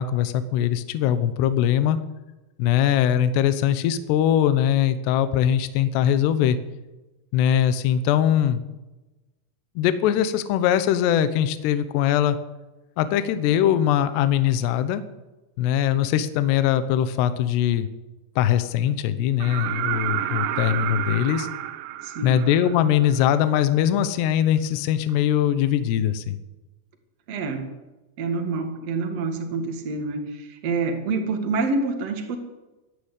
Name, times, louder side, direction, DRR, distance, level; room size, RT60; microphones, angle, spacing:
voice 1, 0.0-2.0 2.6-6.6 7.3-8.6 9.8-12.4 13.0-15.0 15.6-17.9 18.4-21.5 22.2-26.4, left 10 dB, 75° left, 12 dB, 2.8 m, -21 dB
sound 1, 19.4-23.2 25.1-25.2, right 13 dB, 80° right, 2.9 m, -30 dB
voice 2, 22.0-22.4 27.3-27.7 28.2-32.4, right 3 dB, 50° right, 5 dB, 2.1 m, -27 dB
15.5 x 11.5 x 8.2 m, 1.1 s
omnidirectional pair, 5.6 m